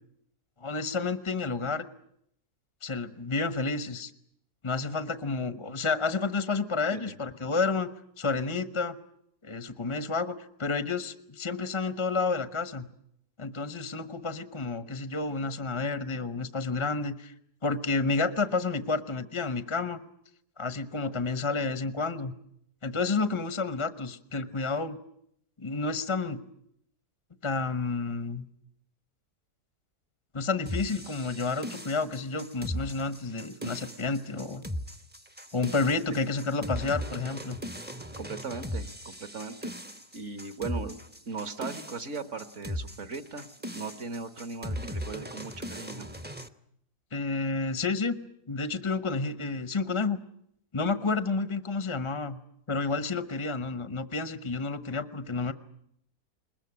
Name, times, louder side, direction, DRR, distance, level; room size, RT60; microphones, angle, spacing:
voice 1, 0.6-1.8 2.8-4.1 4.6-7.9 8.2-9.0 9.4-10.3 10.6-12.9 13.4-17.3 17.6-20.0 20.6-22.3 22.8-25.0 25.6-26.4 27.4-28.4 30.3-34.6 35.5-37.6 47.1-48.2 48.5-50.2 50.7-52.4 52.7-55.5, left 4 dB, 20° left, 12 dB, 0.9 m, -30 dB
sound 1, 30.6-46.5, equal, 10° right, 0.8 m, -38 dB
voice 2, 38.1-39.7 40.1-46.1, right 4 dB, 50° right, 11 dB, 1.6 m, -38 dB
21.5 x 21.0 x 9.8 m, 0.71 s
omnidirectional pair, 1.7 m